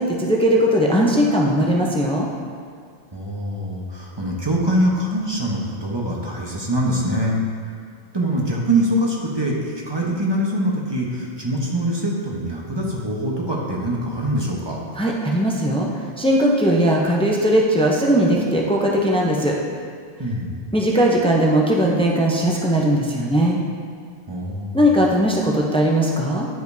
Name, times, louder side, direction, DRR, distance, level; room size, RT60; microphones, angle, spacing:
voice 1, 0.0-2.3 14.9-15.9 16.2-19.5 20.7-23.6 24.7-26.5, equal, 5° left, -2 dB, 0.5 m, -19 dB
voice 2, 3.1-7.4 8.1-9.5 9.9-14.8 20.2-20.6 24.3-24.8, right 1 dB, 25° right, -3 dB, 0.9 m, -23 dB
10.5 x 5.1 x 2.7 m, 2.1 s
omnidirectional pair, 1.1 m